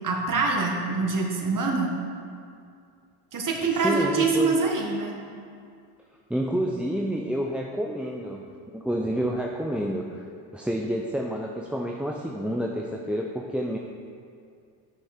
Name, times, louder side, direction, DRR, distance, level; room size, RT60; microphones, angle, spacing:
voice 1, 0.0-1.9 3.3-5.1, right 3 dB, 40° right, 0 dB, 1.8 m, -25 dB
voice 2, 3.7-4.5 6.3-8.4 8.7-10.2 10.5-13.8, equal, ahead, 0 dB, 0.6 m, -29 dB
11.5 x 5.7 x 4.4 m, 2.3 s
supercardioid pair, 70°, 49 cm